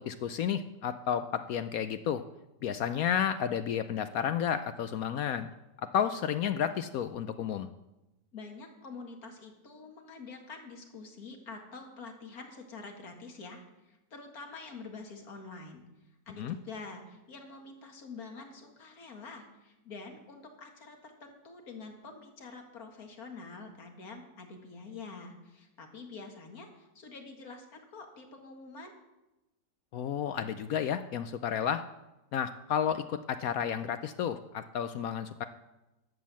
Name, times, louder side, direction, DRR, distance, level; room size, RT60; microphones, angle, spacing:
voice 1, 0.0-2.2 2.6-5.5 5.8-7.7 16.4-16.6 29.9-31.8 32.3-35.4, left 8 dB, 70° left, 11 dB, 0.8 m, -31 dB
voice 2, 8.3-15.8 16.3-28.9, left 4 dB, 55° left, 3 dB, 2.1 m, -47 dB
11.5 x 7.3 x 7.4 m, 0.99 s
omnidirectional pair, 1.9 m